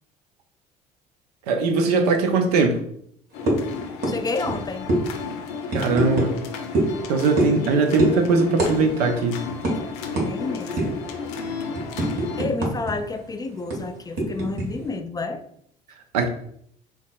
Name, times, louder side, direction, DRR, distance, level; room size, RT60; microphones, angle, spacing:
voice 1, 1.5-2.8 5.7-6.3 7.1-9.4 16.1-16.3, right 4 dB, 80° right, 5 dB, 0.5 m, -20 dB
sound 1, 3.3-12.4, left 5 dB, 75° left, 0.5 m, -32 dB
sound 2, 3.5-3.7 4.0-4.2 4.4-4.6 4.9-5.0 5.7-6.3 6.7-6.9 7.4-7.6 8.0-8.2 8.6-8.7 9.0-9.2 9.6-9.7 10.2-10.3 10.8-11.0 11.4-12.9 13.2-13.3 13.7-14.7, right 1 dB, 55° right, 1.2 m, -23 dB
voice 2, 4.1-4.9 10.2-10.9 12.4-15.4, left 3 dB, 20° left, 7 dB, 0.3 m, -29 dB
3.7 x 2.3 x 2.3 m, 0.67 s
hypercardioid pair, 55°, 20 cm